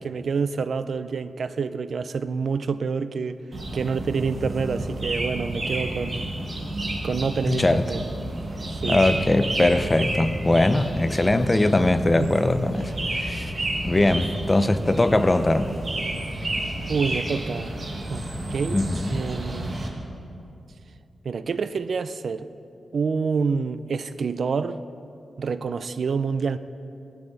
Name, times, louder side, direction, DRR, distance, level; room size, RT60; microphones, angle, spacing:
voice 1, 0.0-3.4 3.7-6.3 7.0-8.0 8.7-9.1 12.2-12.3 16.9-17.8 18.1-18.2 18.5-19.8 21.2-22.5 22.9-24.8 25.4-26.6, right 5 dB, 60° right, 13 dB, 0.4 m, -27 dB
sound 1, 3.5-19.9, right 1 dB, 35° right, 1.6 m, -31 dB
voice 2, 7.5-7.8 8.8-13.5 13.8-15.7 18.7-19.1, left 2 dB, 20° left, 10 dB, 0.5 m, -21 dB
18.5 x 12.0 x 4.0 m, 2.6 s
wide cardioid pair, 140°, 0 cm